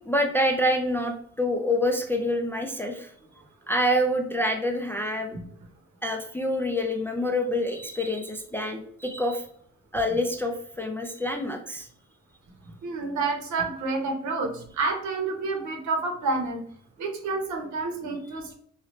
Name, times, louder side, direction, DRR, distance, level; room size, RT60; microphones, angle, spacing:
voice 1, 0.1-3.1 3.7-5.4 6.0-9.5 9.9-11.9, left 1 dB, 10° left, 3 dB, 0.4 m, -27 dB
voice 2, 12.8-16.6 17.0-18.5, right 3 dB, 70° right, 3 dB, 1.0 m, -29 dB
3.2 x 2.5 x 3.1 m, 0.62 s
cardioid pair, 90°, 30 cm